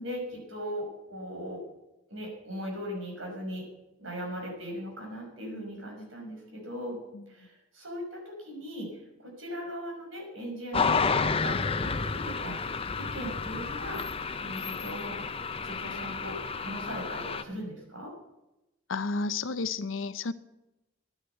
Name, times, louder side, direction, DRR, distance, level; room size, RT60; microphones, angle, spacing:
voice 1, 0.0-1.6 2.1-3.6 4.0-7.0 7.3-8.9 9.2-12.7 13.0-15.2 15.6-18.1, equal, 90° right, 1 dB, 5.9 m, -39 dB
sound 1, 10.7-17.4, left 5 dB, 30° left, 0.6 m, -31 dB
voice 2, 18.9-20.3, left 4 dB, 80° left, 14 dB, 0.7 m, -31 dB
11.5 x 10.0 x 7.9 m, 0.95 s
head